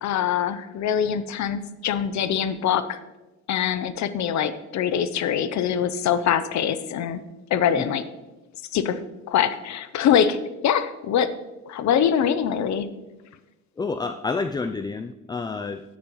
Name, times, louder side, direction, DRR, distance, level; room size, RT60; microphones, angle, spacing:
voice 1, 0.0-3.0 3.5-7.2 7.5-8.0 8.7-9.0 9.3-10.4 10.6-11.3 11.7-12.9, left 8 dB, 65° left, 13 dB, 0.6 m, -23 dB
voice 2, 13.8-15.8, left 4 dB, 15° left, 9 dB, 0.3 m, -29 dB
10.0 x 8.6 x 3.0 m, 1.1 s
cardioid pair, 90°, 30 cm